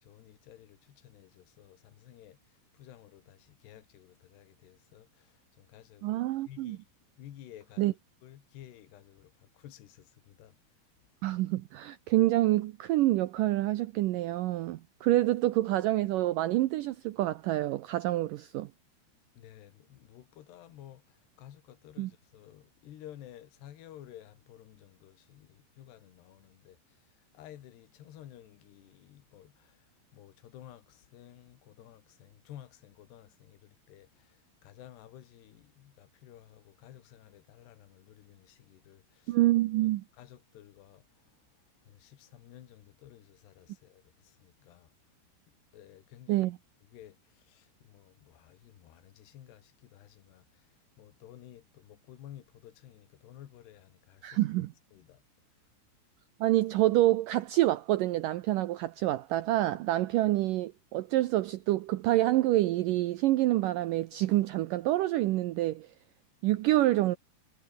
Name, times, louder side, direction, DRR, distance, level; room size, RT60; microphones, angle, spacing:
voice 1, 0.0-6.8 7.2-8.0 8.2-10.6 19.4-39.4 39.8-41.4 41.9-44.9 45.7-46.5 46.9-50.7 51.0-54.4 54.9-55.2, left 12 dB, 80° left, 4.0 m, -53 dB
voice 2, 6.0-6.8 7.8-7.9 11.2-18.7 22.0-22.1 39.3-40.0 46.3-46.6 54.2-54.7 56.4-65.9 66.4-67.2, right 16 dB, 80° right, 1.9 m, -27 dB
omnidirectional pair, 4.7 m